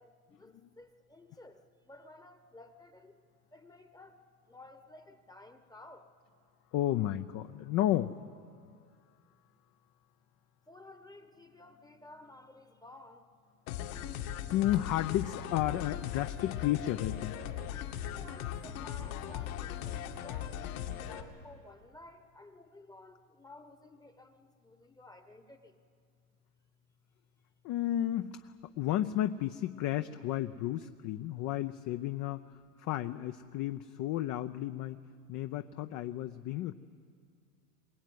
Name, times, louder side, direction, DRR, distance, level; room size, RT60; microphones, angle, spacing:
voice 1, 0.0-1.6 1.9-3.2 3.5-4.1 4.5-6.1 10.7-13.2 18.0-25.8, left 2 dB, 10° left, 8 dB, 1.2 m, -54 dB
voice 2, 6.7-8.2 8.6-8.7 14.5-17.4 27.6-32.4 32.8-35.0 35.3-36.7, left 13 dB, 40° left, 10 dB, 0.8 m, -32 dB
sound 1, 13.7-21.2, left 10 dB, 60° left, 2.3 m, -39 dB
23.0 x 19.5 x 9.4 m, 2.3 s
hypercardioid pair, 115°, 47 cm